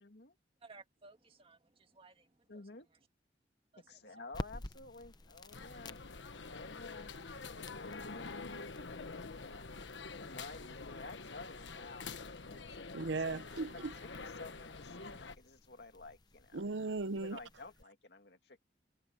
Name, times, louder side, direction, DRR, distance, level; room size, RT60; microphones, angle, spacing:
voice 1, 0.0-0.4 2.5-2.9 3.9-6.0 6.5-7.1 7.8-8.3 8.8-9.1 9.5-9.7 10.2-12.1 12.5-12.9 13.2-13.8 14.2-16.6 17.1-18.6, left 3 dB, 65° left, 2.3 m, -52 dB
voice 2, 0.6-3.1 3.7-4.3, right 4 dB, 30° right, 2.1 m, -60 dB
sound 1, 4.3-17.8, left 1 dB, 25° left, 0.8 m, -53 dB
sound 2, 5.5-15.3, left 4 dB, 85° left, 1.3 m, -46 dB
voice 3, 12.9-13.9 16.5-17.4, right 3 dB, 90° right, 0.8 m, -37 dB
head